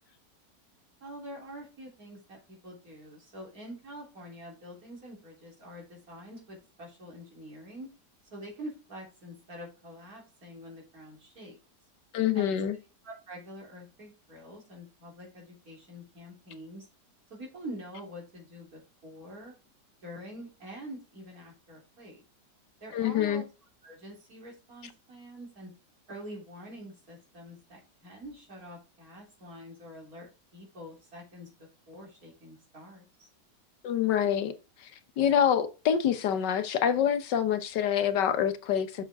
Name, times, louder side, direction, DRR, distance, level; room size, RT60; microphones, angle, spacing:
voice 1, 1.0-7.9 8.3-11.6 12.3-12.6 13.0-16.9 17.3-19.5 20.0-22.2 22.8-23.4 23.8-25.7 26.1-33.3, equal, 55° right, 3.7 m, -46 dB
voice 2, 12.1-12.8 22.9-23.4 33.8-34.5 34.8-34.9 35.2-39.0, left 9 dB, 80° left, 1.6 m, -26 dB
7.1 x 6.8 x 3.5 m
omnidirectional pair, 1.8 m